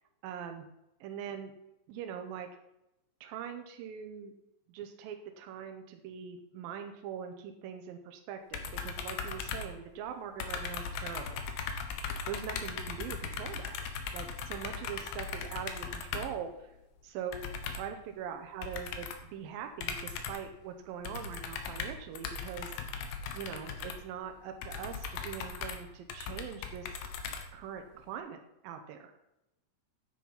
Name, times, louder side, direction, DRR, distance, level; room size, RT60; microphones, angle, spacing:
voice 1, 0.2-0.7 1.0-1.5 1.9-2.5 3.2-4.3 4.7-11.4 12.3-13.8 14.1-16.7 17.0-22.8 23.3-27.0 27.5-29.1, right 8 dB, 85° right, 5 dB, 2.1 m, -42 dB
sound 1, 8.5-10.1 10.4-16.4 17.3-18.0 18.6-19.3 19.8-20.5 21.0-27.9, left 5 dB, 70° left, 2.6 m, -39 dB
9.7 x 8.6 x 5.7 m, 0.89 s
omnidirectional pair, 5.2 m